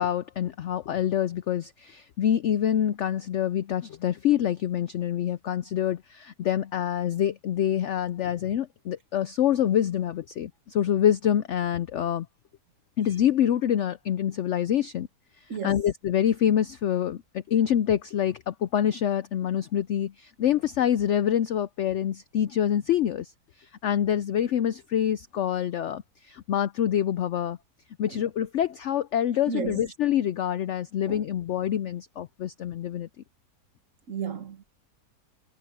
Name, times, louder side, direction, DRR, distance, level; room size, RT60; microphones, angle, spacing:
voice 1, 0.0-12.3 13.0-15.1 15.6-17.2 17.5-23.3 23.8-27.6 28.0-33.1, left 10 dB, 85° left, 0.6 m, -26 dB
voice 2, 15.5-15.8 28.1-28.2 29.5-29.8 31.1-31.3 34.1-34.6, right 6 dB, 50° right, 1.8 m, -33 dB
omnidirectional pair, 1.8 m